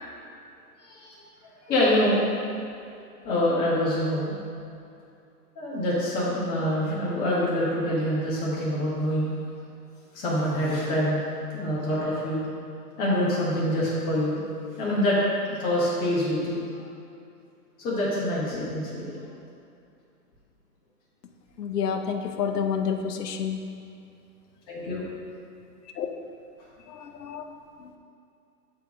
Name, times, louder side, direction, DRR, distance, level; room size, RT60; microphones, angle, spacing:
voice 1, 0.8-1.1 1.6-2.2 3.2-4.4 5.6-9.3 10.1-11.2 11.5-12.5 13.0-14.4 14.8-15.2 15.5-16.6 17.8-19.1 24.7-25.1, left 1 dB, 20° left, -8 dB, 1.8 m, -25 dB
voice 2, 21.6-23.7 26.0-26.1 26.9-27.4, left 7 dB, 75° left, 6 dB, 0.9 m, -29 dB
6.9 x 3.8 x 6.3 m, 2.5 s
hypercardioid pair, 150°, 48 cm